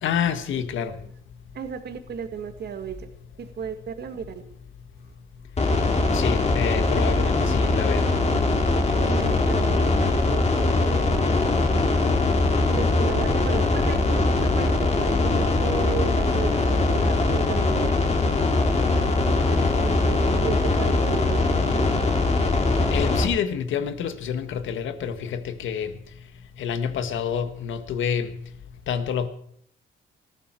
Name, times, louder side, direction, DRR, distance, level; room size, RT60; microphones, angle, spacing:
voice 1, 0.0-0.9 6.1-8.0 22.9-25.9 26.6-28.3 28.9-29.3, left 7 dB, 75° left, 10 dB, 1.6 m, -28 dB
voice 2, 1.5-3.0 3.4-4.4 9.0-9.9 10.3-11.6 12.7-17.9 19.8-22.0, right 6 dB, 55° right, 7 dB, 1.9 m, -34 dB
sound 1, 5.6-23.2, left 2 dB, 35° left, 2.8 m, -21 dB
19.5 x 14.5 x 4.6 m, 0.64 s
cardioid pair, 90°, 20 cm